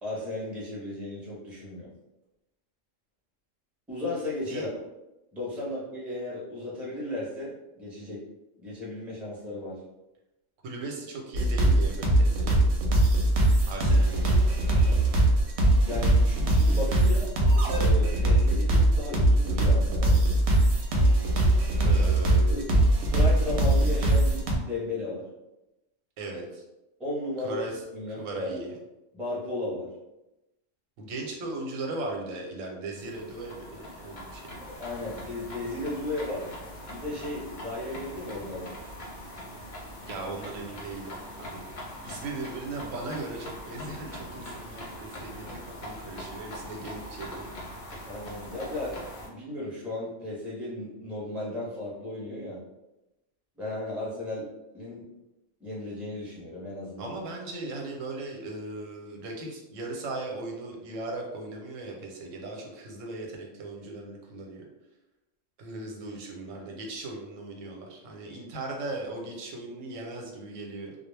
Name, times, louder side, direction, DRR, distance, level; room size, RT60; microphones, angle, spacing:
voice 1, 0.0-1.9 3.9-4.8 5.3-8.2 8.6-9.8 15.8-17.3 17.7-20.2 22.5-22.6 23.1-25.2 27.0-27.6 27.9-28.7 29.1-29.9 34.6-36.5 36.9-38.7 48.1-48.9 49.3-52.6 53.6-54.5 54.7-55.1 55.6-57.2, left 2 dB, ahead, -6 dB, 0.6 m, -35 dB
voice 2, 10.6-12.7 13.7-14.5 21.8-22.7 26.2-26.6 27.4-28.8 31.0-34.6 40.1-41.6 42.0-47.5 57.0-64.7 65.6-71.0, right 2 dB, 90° right, 0 dB, 1.0 m, -38 dB
sound 1, 11.3-24.6, right 1 dB, 65° right, 0.8 m, -22 dB
sound 2, 33.0-49.3, equal, 50° left, 0.6 m, -42 dB
2.3 x 2.0 x 3.1 m, 0.97 s
omnidirectional pair, 1.3 m